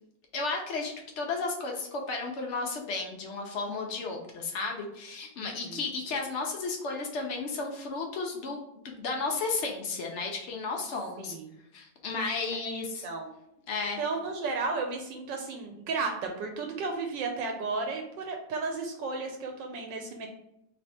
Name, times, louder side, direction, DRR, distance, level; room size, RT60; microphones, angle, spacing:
voice 1, 0.3-11.3 11.7-13.1 13.7-14.0, left 3 dB, 80° left, 1 dB, 0.6 m, -33 dB
voice 2, 5.4-5.8 11.2-11.5 12.6-13.3 14.0-20.3, right 4 dB, 80° right, 3 dB, 1.2 m, -34 dB
3.4 x 3.2 x 4.1 m, 0.81 s
omnidirectional pair, 2.0 m